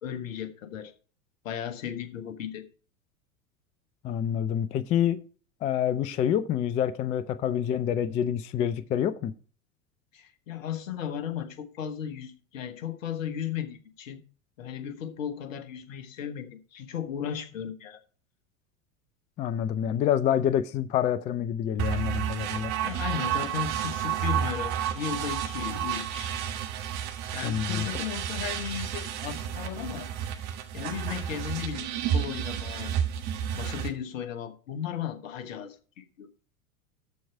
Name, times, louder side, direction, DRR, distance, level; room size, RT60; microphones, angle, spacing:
voice 1, 0.0-0.9 1.4-2.6 10.1-14.2 14.6-18.0 22.8-26.4 27.3-30.1 30.7-32.9 33.5-36.3, left 9 dB, 65° left, 1.4 m, -35 dB
voice 2, 4.0-5.2 5.6-9.3 19.4-22.7 27.4-27.9, left 9 dB, 20° left, 0.3 m, -27 dB
sound 1, 21.8-33.9, right 9 dB, 55° right, 1.6 m, -31 dB
13.5 x 4.6 x 4.4 m
figure-of-eight pair, 85°, 42 cm